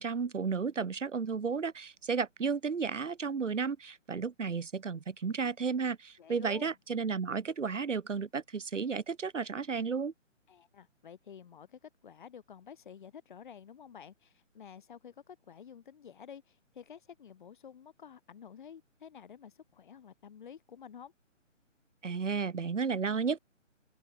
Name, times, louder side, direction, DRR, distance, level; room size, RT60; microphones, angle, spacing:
voice 1, 0.0-10.1 22.0-23.4, right 5 dB, 70° right, 1.1 m, -33 dB
voice 2, 6.2-6.8 10.5-21.1, left 8 dB, 40° left, 2.2 m, -51 dB
open air
figure-of-eight pair, 145°, 38 cm